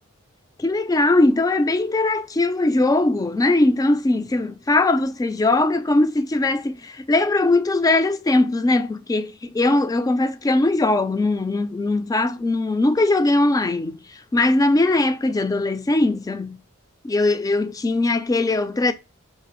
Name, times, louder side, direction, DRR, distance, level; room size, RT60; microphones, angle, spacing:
voice 1, 0.6-16.6 17.0-18.9, left 2 dB, 15° left, 0.3 m, -20 dB
4.7 x 3.3 x 2.9 m
head